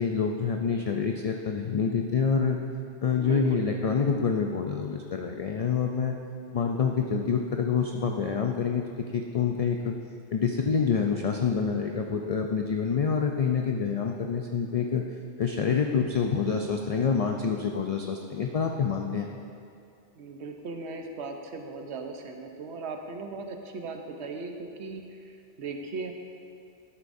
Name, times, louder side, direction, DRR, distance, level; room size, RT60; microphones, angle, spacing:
voice 1, 0.0-2.6 3.0-6.2 6.5-10.0 10.3-15.0 15.4-19.3, left 6 dB, 55° left, 2 dB, 0.4 m, -27 dB
voice 2, 3.2-3.6 20.2-26.1, right 3 dB, 80° right, 4 dB, 1.0 m, -38 dB
12.0 x 8.3 x 2.6 m, 2.5 s
omnidirectional pair, 1.1 m